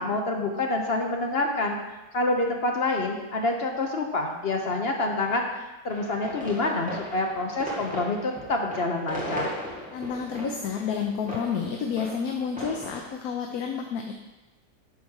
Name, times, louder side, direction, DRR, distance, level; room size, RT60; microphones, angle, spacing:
voice 1, 0.0-1.8 2.1-9.5, left 2 dB, 45° left, 2 dB, 0.9 m, -27 dB
sound 1, 5.9-13.1, equal, 5° right, 2.0 m, -38 dB
voice 2, 9.9-14.1, left 6 dB, 65° left, 3 dB, 1.1 m, -30 dB
9.5 x 4.2 x 6.3 m, 1.1 s
omnidirectional pair, 1.7 m